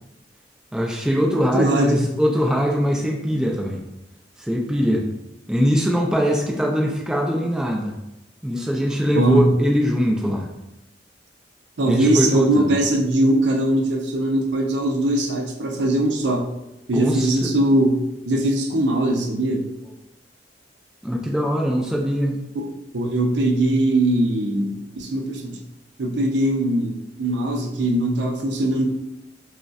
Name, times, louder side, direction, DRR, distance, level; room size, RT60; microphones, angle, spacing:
voice 1, 0.7-3.8 4.4-5.0 5.5-8.0 8.4-10.5 11.9-12.8 16.9-17.5 21.0-22.4, equal, 5° right, -1 dB, 0.3 m, -22 dB
voice 2, 1.4-2.0 9.2-9.5 11.8-16.5 16.9-19.7 22.9-25.6 26.0-28.9, right 1 dB, 70° right, 2 dB, 0.5 m, -21 dB
5.1 x 2.1 x 2.3 m, 0.91 s
head